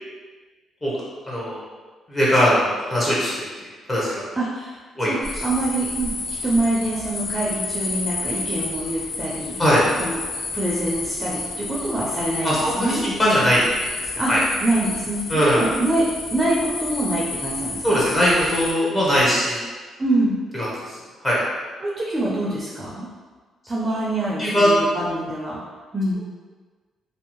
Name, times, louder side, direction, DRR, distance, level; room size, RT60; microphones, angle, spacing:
voice 1, 1.2-1.6 2.1-3.4 3.9-4.2 5.0-5.1 9.6-9.8 12.4-13.6 14.3-14.4 15.3-15.6 17.8-19.6 20.6-21.0 21.2-21.4 24.4-24.7, equal, 25° left, -7 dB, 0.8 m, -20 dB
voice 2, 4.3-9.6 10.0-10.2 10.5-13.1 14.2-16.0 16.3-18.0 20.0-20.4 21.8-23.1 23.7-25.6 25.9-26.2, right 1 dB, 25° right, -5 dB, 0.5 m, -25 dB
sound 1, 5.2-18.7, left 3 dB, 65° left, 0.4 m, -31 dB
2.6 x 2.0 x 3.0 m, 1.4 s
cardioid pair, 90°, 0 cm